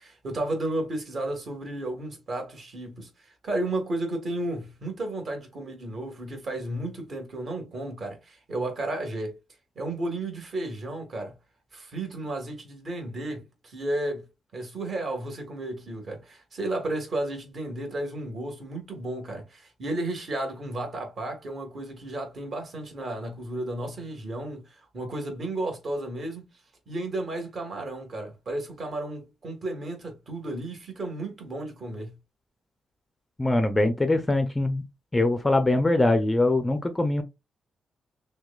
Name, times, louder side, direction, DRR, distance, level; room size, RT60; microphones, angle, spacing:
voice 1, 0.0-3.1 3.4-9.4 9.7-11.3 11.7-14.3 14.5-26.4 26.9-32.1, right 1 dB, 45° right, 1.5 m, -33 dB
voice 2, 33.4-34.8 35.1-37.2, left 2 dB, 15° left, 0.4 m, -22 dB
6.0 x 2.2 x 2.3 m
cardioid pair, 140°, 0 cm